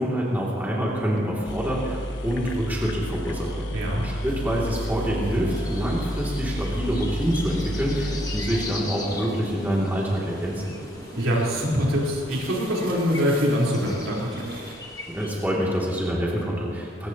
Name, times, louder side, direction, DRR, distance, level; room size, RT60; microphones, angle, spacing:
voice 1, 0.0-3.6 4.0-10.7 15.1-17.1, equal, 10° right, -6 dB, 2.6 m, -26 dB
sound 1, 1.2-1.3 1.5-9.3, equal, 65° left, 1.3 m, -31 dB
voice 2, 3.7-4.0 11.2-14.5, equal, 75° right, -5 dB, 4.1 m, -24 dB
sound 2, 4.3-14.7, right 2 dB, 45° right, 2.5 m, -41 dB
sound 3, 5.5-15.3, left 3 dB, 15° left, 1.3 m, -40 dB
21.5 x 19.5 x 3.0 m, 2.2 s
head